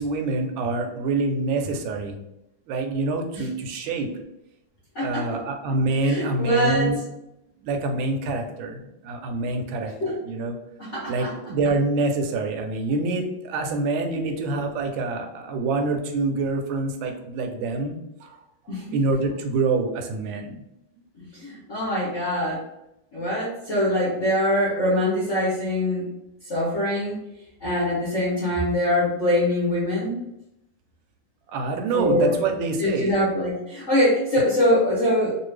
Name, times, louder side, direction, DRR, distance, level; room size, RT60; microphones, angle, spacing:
voice 1, 0.0-2.2 2.7-4.1 5.0-7.0 7.6-8.8 9.0-9.9 10.2-10.5 11.1-18.4 18.9-20.5 31.5-33.1, right 3 dB, 75° right, 4 dB, 1.3 m, -26 dB
voice 2, 4.9-5.4 6.0-7.0 10.0-10.2 10.8-11.3 14.1-14.3 18.7-19.0 21.2-22.6 23.1-26.1 26.4-27.2 27.6-30.2 31.9-32.4 32.8-35.4, left 1 dB, 55° left, -7 dB, 0.8 m, -23 dB
3.2 x 2.4 x 3.2 m, 0.86 s
omnidirectional pair, 2.2 m